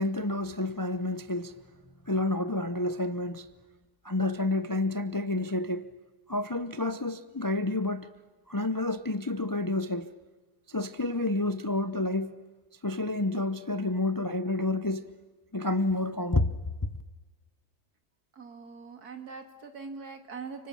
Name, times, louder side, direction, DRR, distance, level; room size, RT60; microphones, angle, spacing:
voice 1, 0.0-1.5 2.0-3.5 4.0-5.9 6.3-8.1 8.5-10.2 10.7-12.4 12.8-15.1 15.5-16.5 16.8-16.9, left 2 dB, 25° left, 0.4 m, -29 dB
voice 2, 18.3-20.7, right 5 dB, 75° right, 2.8 m, -42 dB
30.0 x 25.0 x 7.2 m
omnidirectional pair, 1.6 m